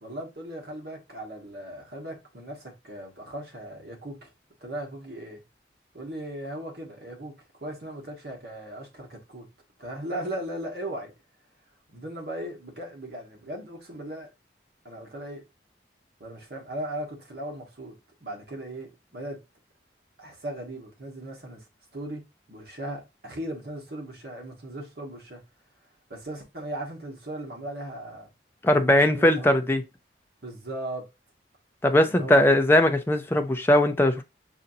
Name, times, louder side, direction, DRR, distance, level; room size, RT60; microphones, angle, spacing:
voice 1, 0.0-4.3 4.6-5.4 5.9-9.5 9.8-11.1 11.9-14.3 14.8-15.4 16.2-19.4 20.2-21.6 21.9-25.4 26.1-28.3 28.6-29.5 30.4-31.1 32.0-32.6, right 1 dB, 55° right, 1.3 m, -38 dB
voice 2, 28.6-29.8 31.8-34.2, left 1 dB, 10° left, 0.4 m, -20 dB
5.6 x 2.6 x 2.7 m
head